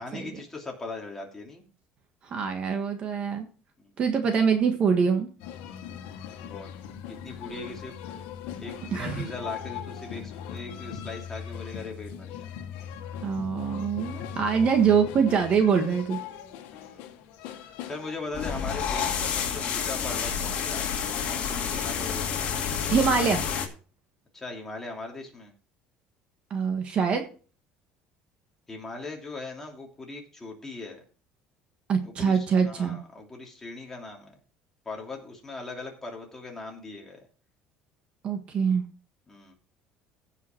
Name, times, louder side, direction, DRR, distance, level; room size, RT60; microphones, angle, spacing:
voice 1, 0.0-1.6 3.8-3.9 6.4-6.7 7.1-8.0 8.6-12.5 16.7-17.2 17.8-20.9 21.2-22.3 24.3-25.5 28.7-31.0 32.0-34.3 34.8-37.2 39.3-39.5, left 3 dB, 10° left, 0 dB, 2.8 m, -40 dB
voice 2, 2.2-3.5 4.0-5.3 8.9-9.2 13.2-16.2 22.9-23.4 26.5-27.2 31.9-33.0 38.2-38.9, right 6 dB, 35° right, 5 dB, 1.5 m, -24 dB
sound 1, 5.4-18.9, left 9 dB, 80° left, 1.6 m, -40 dB
sound 2, 18.3-23.7, left 7 dB, 40° left, 2.4 m, -29 dB
16.0 x 5.8 x 4.5 m, 0.38 s
cardioid pair, 160°, 3 cm